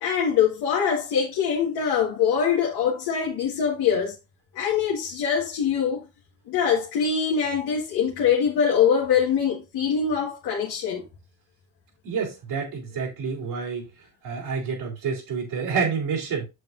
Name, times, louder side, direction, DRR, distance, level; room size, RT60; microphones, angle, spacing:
voice 1, 0.0-4.1 4.5-6.0 6.5-11.0, left 7 dB, 75° left, 1.9 m, -23 dB
voice 2, 12.0-13.9 14.2-16.5, right 5 dB, 75° right, 3.9 m, -28 dB
8.1 x 7.1 x 2.6 m
hypercardioid pair, 60°, 39 cm